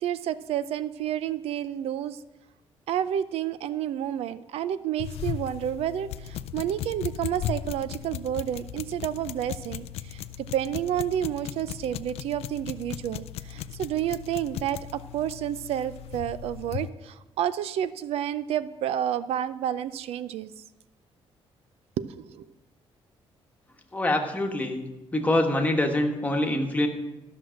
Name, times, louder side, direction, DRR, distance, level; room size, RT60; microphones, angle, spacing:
voice 1, 0.0-2.2 2.9-20.5 22.0-22.5, right 10 dB, 85° right, 16 dB, 0.4 m, -30 dB
sound 1, 5.0-16.9, left 10 dB, 90° left, 0.4 m, -37 dB
voice 2, 23.9-24.8 25.1-26.9, left 1 dB, 15° left, 3 dB, 1.3 m, -25 dB
13.0 x 6.2 x 6.3 m, 0.99 s
cardioid pair, 130°, 10 cm